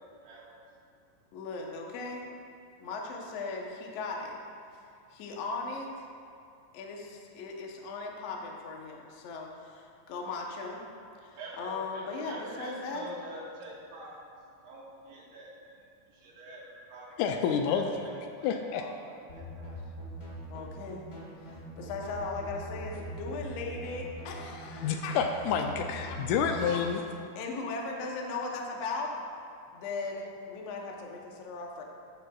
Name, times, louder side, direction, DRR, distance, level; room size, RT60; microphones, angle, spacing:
voice 1, 0.2-0.5 11.4-14.1 14.6-15.8 16.1-17.1 17.4-19.8, right 1 dB, 85° right, -4 dB, 3.3 m, -46 dB
voice 2, 1.3-2.3 2.8-4.4 4.7-4.8 5.1-6.1 6.7-10.8 11.2-13.0 20.5-21.1 21.4-25.2 25.5-25.6 26.0-26.2 26.5-26.8 27.4-29.1 29.7-31.8, left 3 dB, 65° left, 0 dB, 1.7 m, -38 dB
voice 3, 17.2-18.1 18.4-18.9 24.8-27.0, left 6 dB, 90° left, 4 dB, 1.7 m, -29 dB
sound 1, 19.3-26.6, right 1 dB, 35° left, 1.2 m, -43 dB
13.5 x 9.4 x 2.4 m, 2.5 s
omnidirectional pair, 3.9 m